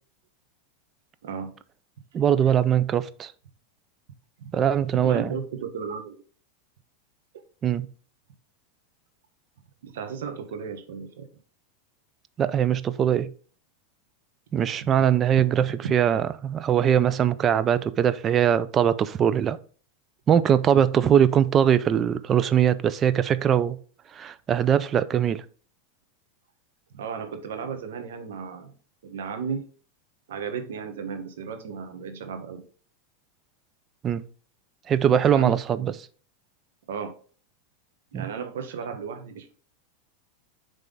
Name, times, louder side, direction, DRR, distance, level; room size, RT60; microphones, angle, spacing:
voice 1, 2.1-3.3 4.5-5.4 7.6-7.9 12.4-13.3 14.5-19.6 20.3-23.8 24.1-25.4 34.0-34.2 34.9-35.9 38.1-38.2, right 9 dB, 30° right, 0.5 m, -21 dB
voice 2, 5.0-6.2 9.8-11.2 15.6-15.7 26.9-28.7 29.0-29.7 30.3-32.6 35.3-35.9 36.9-37.1 38.1-39.5, right 6 dB, 80° right, 1.3 m, -34 dB
9.2 x 3.4 x 3.9 m
supercardioid pair, 120°, 0 cm